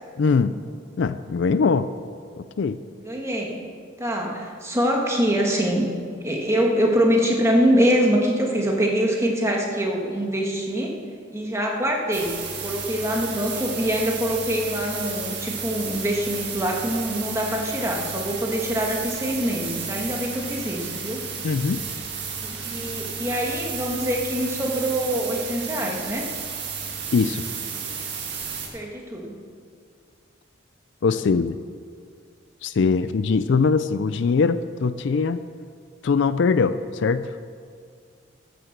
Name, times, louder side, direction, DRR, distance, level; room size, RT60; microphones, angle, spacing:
voice 1, 0.2-0.6 1.0-1.9 2.4-2.8 21.4-21.8 27.1-27.4 31.0-31.6 32.6-35.4 36.0-37.3, left 4 dB, 60° left, 13 dB, 0.4 m, -21 dB
voice 2, 3.0-3.6 4.0-5.9 6.2-10.9 11.3-12.4 12.6-21.2 22.4-26.3 28.7-29.4, equal, 15° right, 0 dB, 1.6 m, -24 dB
sound 1, 12.1-28.7, right 6 dB, 55° right, 2.0 m, -32 dB
14.5 x 7.8 x 6.6 m, 2.2 s
head